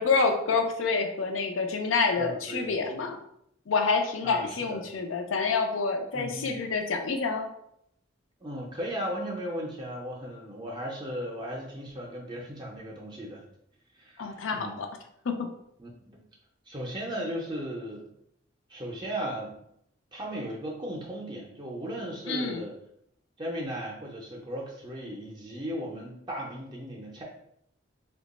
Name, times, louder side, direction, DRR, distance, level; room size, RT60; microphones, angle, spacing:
voice 1, 0.0-3.2 3.7-7.5 14.2-14.9 15.2-15.5 22.3-22.6, left 4 dB, 80° left, 6 dB, 0.5 m, -27 dB
voice 2, 2.2-2.8 4.2-4.8 6.1-6.6 8.4-13.4 13.9-14.8 15.8-16.2 16.7-18.1 18.7-19.6 20.1-22.7 23.4-27.2, equal, 25° right, -2 dB, 0.5 m, -36 dB
2.9 x 2.2 x 4.0 m, 0.74 s
head